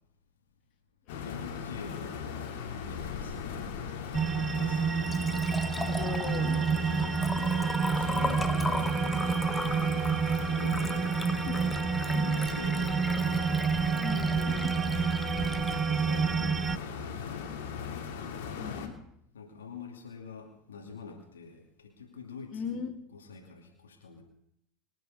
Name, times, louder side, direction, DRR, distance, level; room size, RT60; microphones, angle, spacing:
sound 1, 1.1-18.9, left 6 dB, 65° left, 2.7 m, -38 dB
voice 1, 1.2-2.2 2.9-3.5 4.6-5.4 7.9-10.2 10.6-11.1 12.1-13.3 15.3-18.1 19.3-22.8 23.1-24.2, left 5 dB, 80° left, 2 dB, 2.5 m, -46 dB
sound 2, 4.1-16.8, right 6 dB, 25° right, 0.5 m, -29 dB
Liquid, 4.8-16.8, left 3 dB, 15° left, 1.2 m, -39 dB
voice 2, 5.9-6.8 7.4-7.5 10.8-10.9 11.4-11.8 12.2-12.4 14.0-14.7 18.6-18.9 22.5-22.9, left 6 dB, 45° left, 2 dB, 3.0 m, -39 dB
24.0 x 9.4 x 5.3 m, 0.75 s
hypercardioid pair, 80°, 0 cm